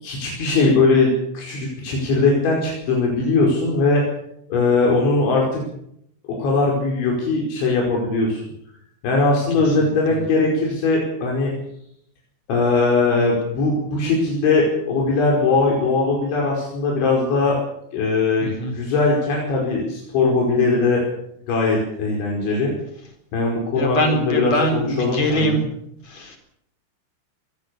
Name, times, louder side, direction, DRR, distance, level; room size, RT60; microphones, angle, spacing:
voice 1, 0.0-4.0 4.5-5.6 6.4-8.4 9.0-11.5 12.5-17.6 17.9-21.0 21.5-22.7 23.3-25.6, left 3 dB, 80° left, -2 dB, 7.5 m, -20 dB
voice 2, 9.7-10.2 18.4-18.7 23.7-25.6 26.0-26.4, equal, 40° left, 5 dB, 5.1 m, -23 dB
24.5 x 19.0 x 7.1 m, 0.73 s
omnidirectional pair, 5.2 m